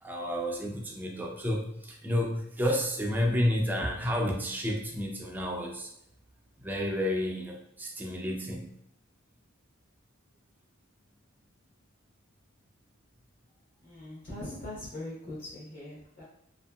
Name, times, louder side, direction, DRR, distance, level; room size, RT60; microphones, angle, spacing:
voice 1, 0.0-5.9 6.6-8.7, equal, 10° right, 0 dB, 0.4 m, -30 dB
voice 2, 13.8-16.2, left 1 dB, 45° left, -8 dB, 0.8 m, -41 dB
2.7 x 2.6 x 2.2 m, 0.75 s
head